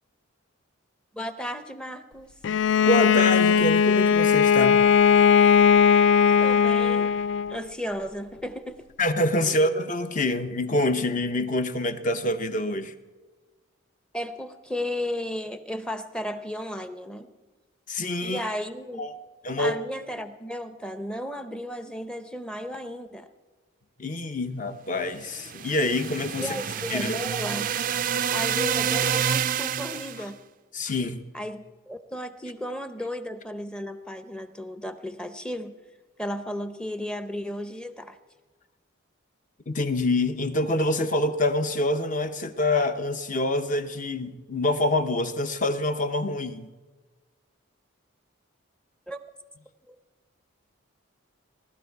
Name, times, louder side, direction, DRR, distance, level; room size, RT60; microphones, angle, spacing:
voice 1, 1.1-2.3 6.4-7.1 7.5-8.8 9.4-9.6 14.1-17.3 18.2-19.1 19.6-23.3 26.4-27.7 28.3-30.4 31.3-35.7 36.2-38.2 49.1-49.2 49.9-50.0, left 1 dB, 5° left, 9 dB, 0.6 m, -34 dB
Bowed string instrument, 2.4-7.6, left 7 dB, 60° left, 0.4 m, -19 dB
voice 2, 2.8-4.8 9.0-12.9 17.9-18.5 19.0-19.2 19.4-19.7 24.0-26.5 26.9-27.2 30.7-31.2 39.7-46.7, left 1 dB, 40° left, 8 dB, 0.8 m, -26 dB
sound 1, 25.3-30.2, right 9 dB, 40° right, 0.3 m, -28 dB
18.5 x 12.5 x 4.6 m, 1.3 s
head